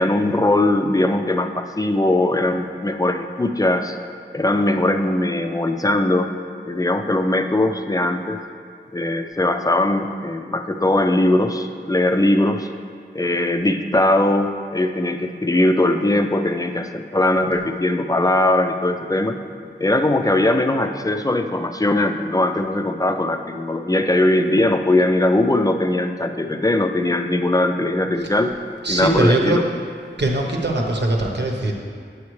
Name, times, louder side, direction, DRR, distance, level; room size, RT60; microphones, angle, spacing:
voice 1, 0.0-4.0 4.3-6.3 6.7-8.4 8.9-12.7 13.1-19.4 19.8-28.5 28.9-29.6, left 1 dB, 20° left, 6 dB, 0.5 m, -20 dB
voice 2, 28.8-29.6 30.2-31.7, right 1 dB, 65° right, 0 dB, 1.0 m, -21 dB
8.3 x 7.8 x 3.2 m, 2.2 s
wide cardioid pair, 55°, 19 cm